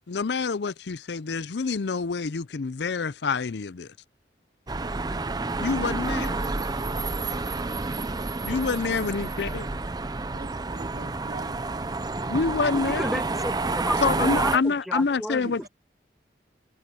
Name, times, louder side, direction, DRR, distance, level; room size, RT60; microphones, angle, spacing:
voice 1, 0.1-3.9 5.6-6.4 8.4-9.7 12.3-13.2 14.0-15.7, left 4 dB, 65° left, 0.5 m, -27 dB
sound 1, 4.7-14.6, right 3 dB, 20° right, 0.6 m, -29 dB
voice 2, 8.9-9.4 10.3-12.2 12.5-13.0 14.0-14.4 15.4-15.7, right 2 dB, 50° right, 1.5 m, -43 dB
voice 3, 12.8-15.7, equal, ahead, 1.5 m, -32 dB
head